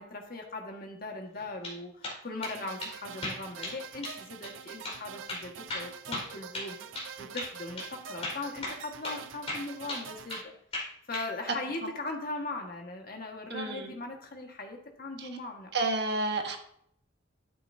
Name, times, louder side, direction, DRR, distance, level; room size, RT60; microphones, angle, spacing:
voice 1, 0.0-6.8 7.2-10.5 11.1-15.7, left 2 dB, 50° left, 2 dB, 1.7 m, -39 dB
sound 1, 1.4-1.8 2.0-2.5 2.8-2.9 3.2-3.8 4.0-4.2 4.4-4.5 4.8-5.0 5.3-7.1 7.4-7.5 7.8-7.9 8.2-9.2 9.5-10.5 10.7-11.3, left 2 dB, 30° left, 4.7 m, -36 dB
sound 2, 2.4-10.4, right 7 dB, 85° right, 0.6 m, -46 dB
voice 2, 13.5-14.0 15.2-15.3 15.7-16.6, right 2 dB, 55° right, 3 dB, 1.5 m, -30 dB
13.0 x 8.9 x 2.8 m, 0.68 s
head